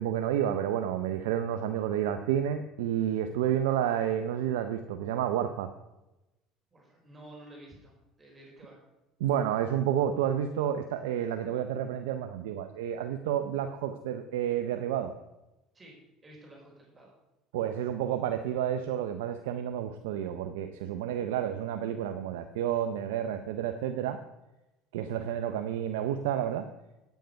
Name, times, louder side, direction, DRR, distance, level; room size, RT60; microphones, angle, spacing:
voice 1, 0.0-5.7 9.2-15.1 17.5-24.2 24.9-26.7, right 10 dB, 85° right, 7 dB, 0.6 m, -30 dB
voice 2, 6.7-8.8 15.7-15.9 16.2-17.2, right 1 dB, 25° right, -2 dB, 4.4 m, -51 dB
9.3 x 9.1 x 5.2 m, 0.98 s
supercardioid pair, 85°, 0 cm